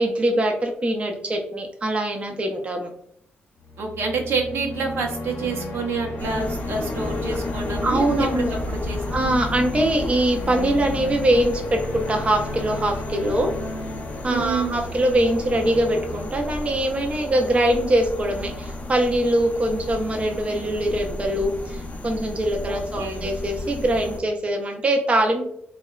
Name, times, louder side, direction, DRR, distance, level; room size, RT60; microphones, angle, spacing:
voice 1, 0.0-2.9 7.8-8.5 9.1-13.5 14.2-25.5, right 1 dB, 30° right, 3 dB, 0.4 m, -23 dB
sound 1, 3.6-17.8, left 2 dB, 80° left, 0.6 m, -34 dB
voice 2, 3.8-9.0 14.3-14.8 22.7-23.2, right 4 dB, 75° right, 1 dB, 0.6 m, -28 dB
sound 2, 6.2-24.2, left 2 dB, 35° left, 0.5 m, -33 dB
2.7 x 2.1 x 2.2 m, 0.69 s
cardioid pair, 90°, 4 cm